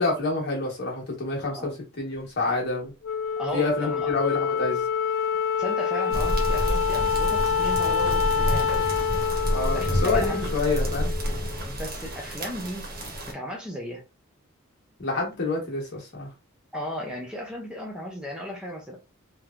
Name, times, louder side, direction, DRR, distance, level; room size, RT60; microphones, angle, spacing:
voice 1, 0.0-1.7 2.0-2.9 3.5-4.9 9.5-11.1 15.0-16.3, left 3 dB, 55° left, 1.1 m, -27 dB
Wind instrument woodwind instrument, 3.0-11.6, left 7 dB, 75° left, 0.5 m, -27 dB
voice 2, 3.4-4.1 5.6-8.9 9.7-10.5 11.6-12.9 13.3-14.0 16.7-19.0, equal, 5° right, 0.4 m, -35 dB
sound 1, 6.1-13.3, equal, 50° right, 0.8 m, -29 dB
3.0 x 2.1 x 2.4 m
head